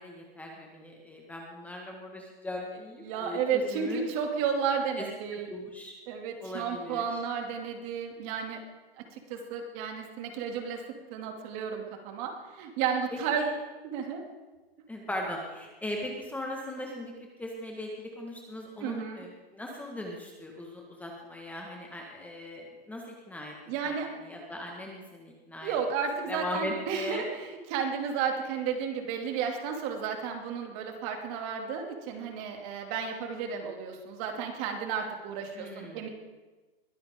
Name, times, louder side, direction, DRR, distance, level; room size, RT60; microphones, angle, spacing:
voice 1, 0.0-4.0 5.0-5.1 5.3-5.9 6.4-7.2 13.1-13.5 14.9-17.1 17.4-23.6 23.8-25.8 26.3-27.2 35.5-36.1, left 1 dB, 5° left, 0 dB, 1.5 m, -39 dB
voice 2, 3.0-5.5 6.1-8.6 9.0-10.8 11.1-13.5 13.8-14.2 18.8-19.2 23.7-24.1 25.6-36.1, right 6 dB, 35° right, 3 dB, 2.5 m, -32 dB
22.0 x 13.5 x 3.7 m, 1.2 s
hypercardioid pair, 140°, 30 cm